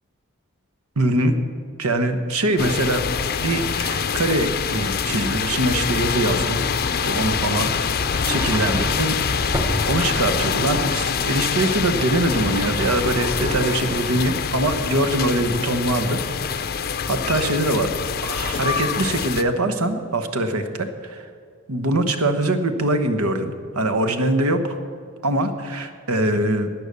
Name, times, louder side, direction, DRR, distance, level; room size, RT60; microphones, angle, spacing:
voice 1, 1.0-1.3 1.8-3.1 3.4-6.7 7.0-7.9 8.3-9.2 9.9-16.2 16.5-16.7 17.1-17.9 18.2-21.3 21.7-24.8 25.2-26.7, right 1 dB, 90° right, 8 dB, 1.1 m, -23 dB
sound 1, 2.6-19.4, left 6 dB, 45° left, 0.5 m, -25 dB
Sliding door, 7.9-10.4 12.1-15.2, equal, 10° right, 0.9 m, -32 dB
11.5 x 9.7 x 6.8 m, 2.2 s
head